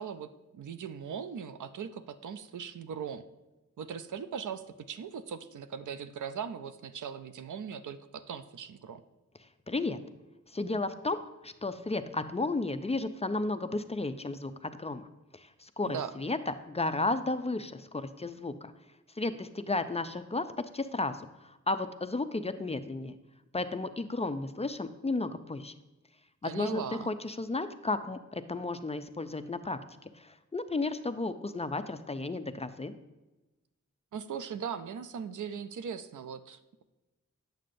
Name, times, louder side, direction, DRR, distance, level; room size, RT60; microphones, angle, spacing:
voice 1, 0.0-3.2 3.8-9.0 15.9-16.2 26.4-27.1 34.1-36.8, right 7 dB, 90° right, 11 dB, 0.5 m, -39 dB
voice 2, 9.7-10.0 10.5-15.0 15.6-18.7 19.2-20.5 20.7-21.3 21.7-23.2 23.5-25.7 26.4-29.8 30.5-32.9, left 2 dB, 20° left, 10 dB, 0.4 m, -33 dB
9.0 x 7.5 x 2.6 m, 1.1 s
wide cardioid pair, 85°, 30 cm